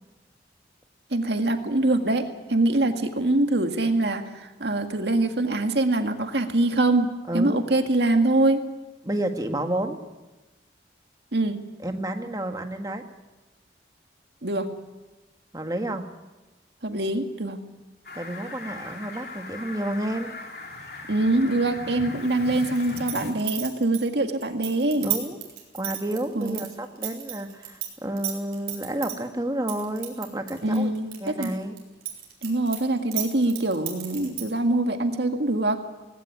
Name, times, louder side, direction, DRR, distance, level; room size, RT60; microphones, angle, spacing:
voice 1, 1.1-8.6 11.3-11.6 14.4-14.7 16.8-17.6 21.1-25.1 26.4-26.7 30.6-31.5 32.4-35.8, right 2 dB, 70° right, 6 dB, 1.9 m, -24 dB
voice 2, 7.3-7.6 9.0-10.0 11.8-13.0 15.5-16.1 18.1-20.3 25.0-25.4 25.7-30.9 31.2-31.7, right 1 dB, 20° right, 5 dB, 1.6 m, -30 dB
Fowl, 18.0-23.3, left 2 dB, 60° left, 3.1 m, -39 dB
sound 1, 22.8-27.9 28.2-29.1 29.7-31.5 31.8-34.6, right 13 dB, 55° right, 4.9 m, -32 dB
19.0 x 16.5 x 9.9 m, 1.1 s
head